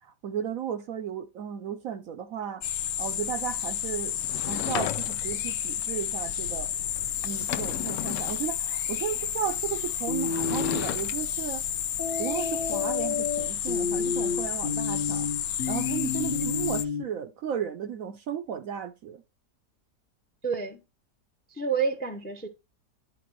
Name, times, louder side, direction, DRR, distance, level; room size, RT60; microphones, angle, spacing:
voice 1, 0.0-2.6 3.0-4.2 4.5-6.7 7.2-11.6 12.2-15.3 15.7-19.2, right 9 dB, 65° right, 0.9 m, -34 dB
sound 1, 2.6-16.8, left 10 dB, 65° left, 1.0 m, -31 dB
Sliding door / Wood, 4.2-5.5 7.0-7.1 7.3-8.4 10.2-11.1, left 12 dB, 80° left, 1.2 m, -34 dB
sound 2, 10.1-10.9 12.0-17.0, left 6 dB, 40° left, 0.9 m, -30 dB
voice 2, 20.4-20.8 21.5-22.5, right 5 dB, 10° left, 0.5 m, -29 dB
11.0 x 4.6 x 3.1 m
omnidirectional pair, 1.9 m